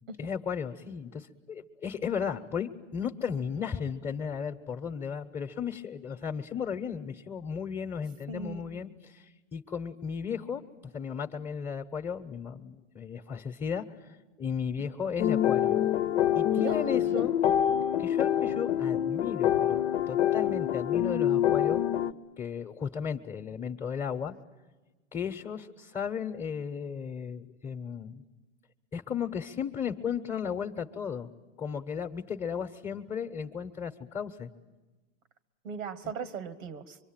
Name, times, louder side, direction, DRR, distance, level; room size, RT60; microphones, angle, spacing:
voice 1, 0.2-10.6 10.9-13.8 14.4-15.9 16.3-17.3 18.0-21.8 22.4-24.3 25.1-28.2 28.9-31.3 31.6-34.5, left 7 dB, 15° left, 5 dB, 1.1 m, -35 dB
voice 2, 8.3-8.6 15.0-15.1 16.6-17.3 35.6-37.0, right 5 dB, 85° right, 13 dB, 1.5 m, -38 dB
sound 1, 15.2-22.1, left 10 dB, 65° left, 0.9 m, -26 dB
25.0 x 23.5 x 9.0 m, 1.2 s
hypercardioid pair, 125°, 40 cm